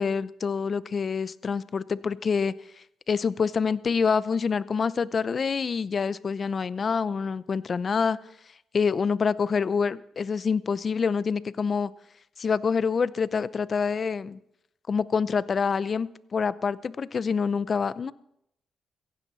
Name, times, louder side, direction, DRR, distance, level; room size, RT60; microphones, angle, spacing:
voice 1, 0.0-2.5 3.1-8.2 8.7-11.9 12.4-14.4 14.9-18.1, left 5 dB, 45° left, 18 dB, 0.6 m, -26 dB
16.0 x 15.5 x 4.1 m, 0.77 s
cardioid pair, 75°, 0 cm